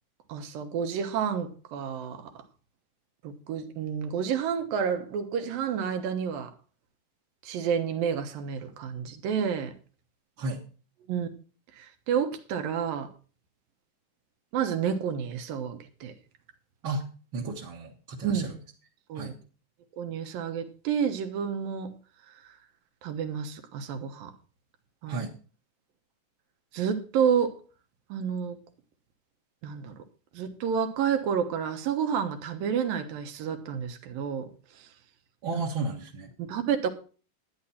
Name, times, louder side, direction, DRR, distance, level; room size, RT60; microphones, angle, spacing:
voice 1, 0.3-2.3 3.2-6.5 7.4-9.7 11.1-11.3 11.8-13.1 14.5-16.1 18.2-18.5 19.1-19.3 20.0-21.9 22.3-22.4 23.0-24.3 25.0-25.2 26.7-27.6 28.1-28.6 29.6-29.9 30.3-34.5 34.7-34.9 36.4-36.9, right 7 dB, 85° right, 3.0 m, -30 dB
voice 2, 17.3-18.6 19.1-19.4 25.1-25.3 35.4-36.3, right 3 dB, 50° right, 1.7 m, -33 dB
12.0 x 9.9 x 4.2 m
omnidirectional pair, 4.0 m